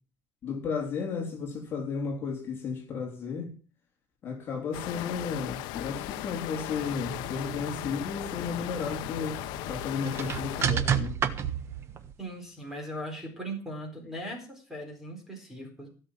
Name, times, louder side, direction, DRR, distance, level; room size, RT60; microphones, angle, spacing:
voice 1, 0.4-3.5 4.2-9.4 9.7-11.1, left 5 dB, 30° left, 3.5 m, -33 dB
sound 1, 4.7-10.6, left 16 dB, 75° left, 0.8 m, -37 dB
sound 2, 6.7-12.1, right 8 dB, 35° right, 1.3 m, -33 dB
voice 2, 12.2-15.9, right 1 dB, 5° right, 4.5 m, -39 dB
16.5 x 6.6 x 7.5 m
cardioid pair, 165°, 8 cm